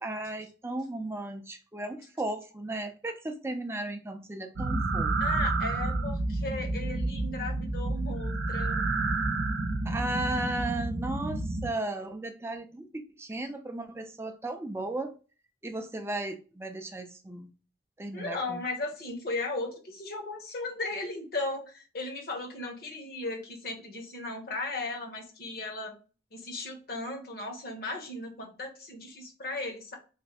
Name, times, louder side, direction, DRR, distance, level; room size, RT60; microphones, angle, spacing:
voice 1, 0.0-5.1 9.8-15.2 15.6-17.5 18.0-18.6, right 2 dB, 15° right, 0.4 m, -35 dB
sound 1, 4.6-11.7, right 2 dB, 85° right, 0.6 m, -30 dB
voice 2, 5.2-8.8 18.1-25.9 26.3-29.9, left 2 dB, 50° left, 1.0 m, -36 dB
3.3 x 2.1 x 4.1 m
head